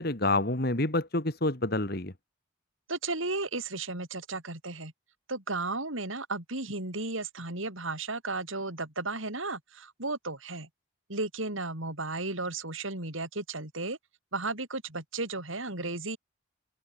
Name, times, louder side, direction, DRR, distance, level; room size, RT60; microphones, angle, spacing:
voice 1, 0.0-2.1, left 2 dB, 50° left, 2.3 m, -28 dB
voice 2, 2.9-4.9 5.3-10.7 11.1-14.0 14.3-16.2, right 3 dB, 75° right, 5.9 m, -34 dB
open air
head